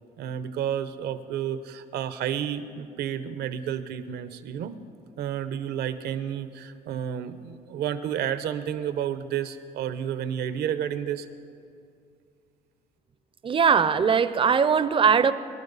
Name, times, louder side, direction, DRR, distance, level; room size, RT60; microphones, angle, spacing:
voice 1, 0.2-4.8 5.2-11.3, right 9 dB, 75° right, 0.9 m, -31 dB
voice 2, 13.4-15.3, right 6 dB, 30° right, 0.6 m, -20 dB
25.0 x 11.5 x 4.1 m
cardioid pair, 110°, 17 cm